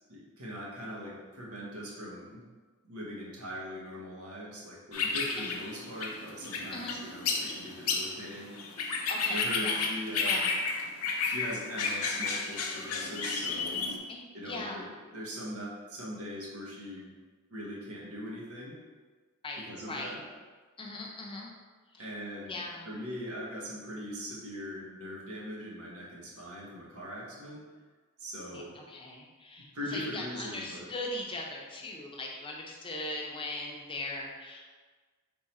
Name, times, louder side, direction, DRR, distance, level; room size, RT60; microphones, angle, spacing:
voice 1, 0.1-2.4 2.8-8.6 9.3-10.5 11.2-13.9 14.3-17.1 17.5-18.8 19.6-20.2 22.0-22.6 22.8-27.6 28.2-28.8 29.7-30.9, equal, 85° right, -4 dB, 1.2 m, -41 dB
sound 1, 4.9-14.0, left 4 dB, 80° left, 0.6 m, -32 dB
voice 2, 6.7-7.1 9.1-9.8 10.2-10.5 14.1-14.8 19.4-20.1 20.8-21.5 21.9-22.1 22.5-22.9 28.5-34.7, left 2 dB, 25° left, -1 dB, 0.6 m, -40 dB
3.7 x 3.1 x 4.2 m, 1.4 s
head